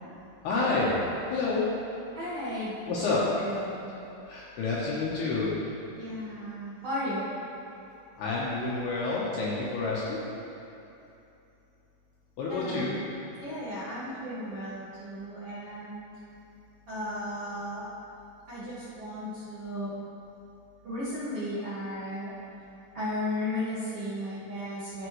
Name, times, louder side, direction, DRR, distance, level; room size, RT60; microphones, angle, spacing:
voice 1, 0.4-0.9 1.3-1.6 2.9-3.3 4.3-5.5 8.2-10.2 12.4-12.9, left 3 dB, 70° left, -6 dB, 2.6 m, -29 dB
voice 2, 2.1-3.9 5.9-7.3 12.5-13.1 13.4-16.0 16.9-17.9 18.5-20.0 20.8-22.3 22.9-25.1, left 1 dB, 50° right, -13 dB, 1.8 m, -35 dB
14.0 x 7.0 x 3.2 m, 2.8 s
omnidirectional pair, 5.6 m